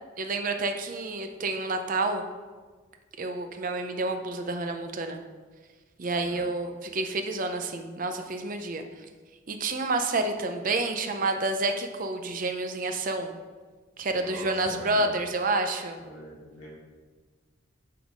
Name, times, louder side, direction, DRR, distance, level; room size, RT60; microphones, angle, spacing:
voice 1, 0.2-2.3 3.2-5.2 6.0-8.8 9.5-13.3 14.0-16.0, right 2 dB, 40° right, 6 dB, 0.5 m, -29 dB
voice 2, 14.1-15.1 16.0-16.7, equal, 70° left, -6 dB, 2.0 m, -42 dB
7.0 x 3.9 x 5.0 m, 1.4 s
head